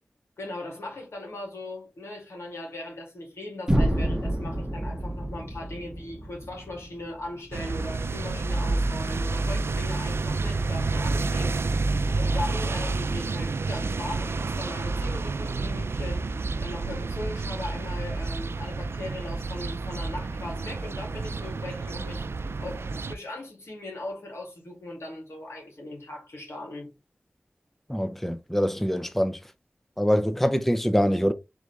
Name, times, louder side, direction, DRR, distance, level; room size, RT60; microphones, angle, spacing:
voice 1, 0.4-11.5 12.2-16.2 16.6-22.3 22.6-26.9, left 1 dB, 85° left, 2.5 m, -39 dB
sound 1, 3.7-7.6, right 1 dB, 15° right, 0.9 m, -28 dB
sound 2, 7.5-23.1, right 3 dB, 70° right, 0.3 m, -29 dB
voice 2, 27.9-29.4 30.0-31.3, equal, 5° left, 0.5 m, -24 dB
3.9 x 3.5 x 3.3 m
cardioid pair, 40°, 4 cm